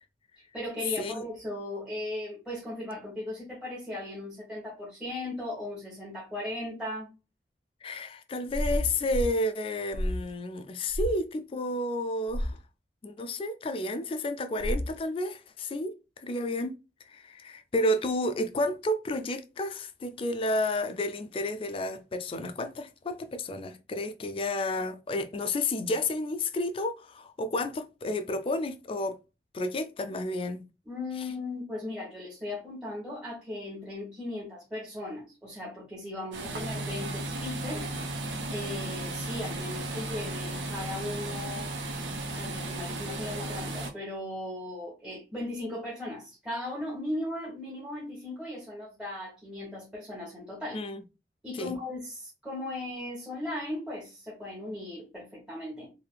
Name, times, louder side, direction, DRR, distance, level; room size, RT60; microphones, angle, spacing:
voice 1, 0.4-7.1 30.8-37.9 38.5-41.7 42.3-50.9 51.4-55.9, left 1 dB, 5° right, 1.0 m, -37 dB
voice 2, 1.0-1.3 7.8-12.6 13.0-16.8 17.1-29.2 29.5-30.7 31.2-31.3 50.7-51.0 51.5-51.8, left 1 dB, 30° left, 0.3 m, -31 dB
sound 1, 8.5-9.4 9.9-10.3 10.9-11.2 12.3-12.6 14.6-15.0, left 1 dB, 85° left, 0.5 m, -31 dB
sound 2, 36.3-43.9, right 2 dB, 90° right, 0.6 m, -35 dB
3.3 x 2.7 x 2.3 m
head